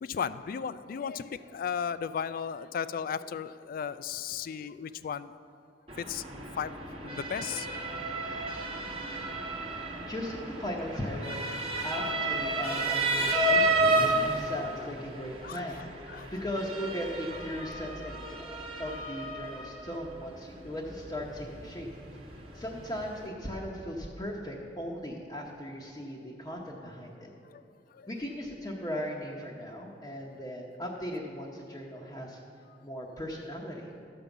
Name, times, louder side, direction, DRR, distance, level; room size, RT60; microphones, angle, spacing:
voice 1, 0.0-5.3 6.0-6.2 6.6-6.7 7.0-7.7 11.8-11.9 12.5-12.6 15.4-16.3 27.5-27.6 27.9-28.1, left 7 dB, 50° left, 14 dB, 0.3 m, -35 dB
Motor vehicle (road) / Siren, 5.9-23.3, right 2 dB, 30° right, 1.2 m, -32 dB
voice 2, 10.1-11.4 11.8-21.9 22.3-27.3 28.1-32.4 32.8-33.9, equal, 20° left, -3 dB, 0.8 m, -38 dB
12.0 x 5.3 x 7.1 m, 2.5 s
head